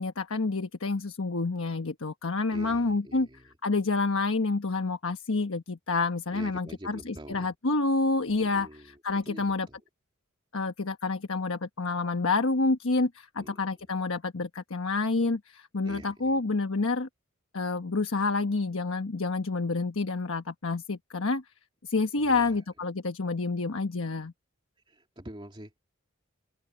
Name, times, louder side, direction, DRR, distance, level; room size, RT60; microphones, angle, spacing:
voice 1, 0.0-3.3 3.6-8.7 9.0-9.7 10.5-17.1 17.5-21.4 21.8-24.3, left 3 dB, 70° left, 1.2 m, -28 dB
voice 2, 2.5-3.5 6.3-7.5 8.4-9.8 13.4-13.6 15.8-16.4 22.2-22.6 24.9-25.8, right 1 dB, 25° right, 2.9 m, -46 dB
head